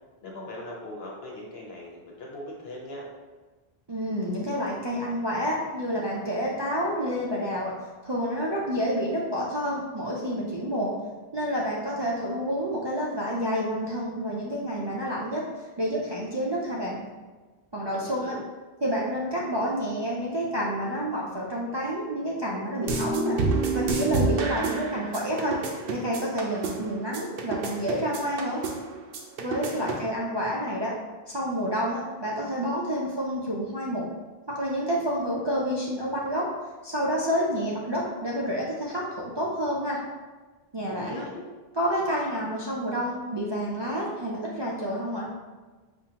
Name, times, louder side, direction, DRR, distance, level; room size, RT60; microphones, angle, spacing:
voice 1, 0.2-3.1 17.9-18.4 29.5-30.1 40.9-41.4, left 1 dB, 75° left, -2 dB, 1.1 m, -40 dB
voice 2, 3.9-7.7 8.0-10.9 11.3-15.4 15.8-17.0 17.7-18.3 18.8-23.4 23.7-25.6 25.9-28.6 29.4-30.9 31.3-34.1 34.5-36.5 36.8-40.0 40.7-41.2 41.8-45.3, equal, 40° right, -6 dB, 0.4 m, -29 dB
sound 1, 22.8-30.1, right 3 dB, 70° right, 0.8 m, -29 dB
5.2 x 2.5 x 2.8 m, 1.3 s
omnidirectional pair, 1.0 m